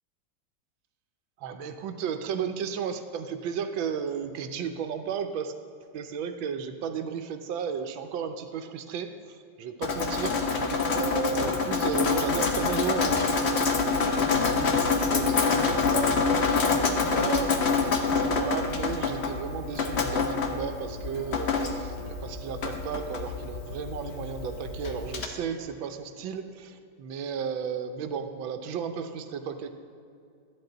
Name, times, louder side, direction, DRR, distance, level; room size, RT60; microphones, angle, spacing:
voice 1, 1.4-5.6 5.9-29.7, right 7 dB, 80° right, 7 dB, 1.5 m, -34 dB
Drip, 9.8-25.3, left 4 dB, 50° left, 0.8 m, -26 dB
13.0 x 10.5 x 3.9 m, 2.5 s
omnidirectional pair, 2.1 m